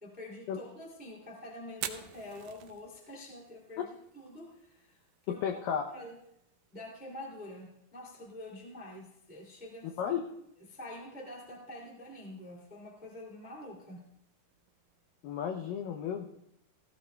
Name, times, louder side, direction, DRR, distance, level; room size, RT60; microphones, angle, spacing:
voice 1, 0.0-5.4 5.9-6.2 6.7-10.0 10.7-14.0, left 1 dB, 5° right, -2 dB, 1.2 m, -46 dB
Fire, 1.7-15.6, right 11 dB, 80° right, 2.2 m, -51 dB
voice 2, 5.3-5.8 10.0-10.2 15.2-16.3, left 8 dB, 80° left, 4 dB, 2.0 m, -33 dB
16.5 x 15.5 x 2.2 m, 0.78 s
omnidirectional pair, 4.8 m